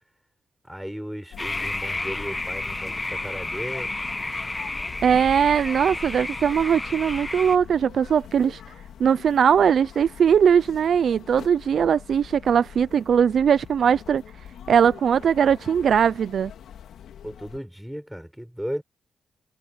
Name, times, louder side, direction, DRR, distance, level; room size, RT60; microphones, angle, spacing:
voice 1, 0.6-4.0 17.2-18.8, equal, ahead, 6.9 m, -35 dB
sound 1, 1.3-17.6, left 9 dB, 80° left, 2.6 m, -43 dB
sound 2, 1.4-7.6, left 2 dB, 20° left, 1.4 m, -31 dB
voice 2, 5.0-8.6 9.0-14.2 14.7-16.5, right 7 dB, 65° right, 0.5 m, -20 dB
cardioid pair, 85°, 0 cm